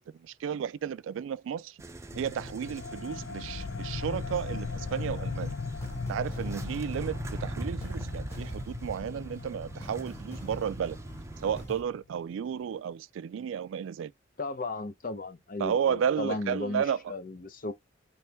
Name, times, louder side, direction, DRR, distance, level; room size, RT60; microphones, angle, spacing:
voice 1, 0.0-1.8 2.1-5.6 6.1-11.0 11.4-14.1 15.6-17.0, right 8 dB, 85° right, 0.3 m, -33 dB
sound 1, 1.8-11.7, right 2 dB, 15° right, 0.5 m, -41 dB
sound 2, 2.1-12.3, left 4 dB, 80° left, 0.5 m, -39 dB
sound 3, 5.3-11.8, right 1 dB, 15° left, 1.6 m, -47 dB
voice 2, 14.4-17.7, left 2 dB, 45° left, 0.7 m, -35 dB
4.4 x 3.1 x 3.4 m
head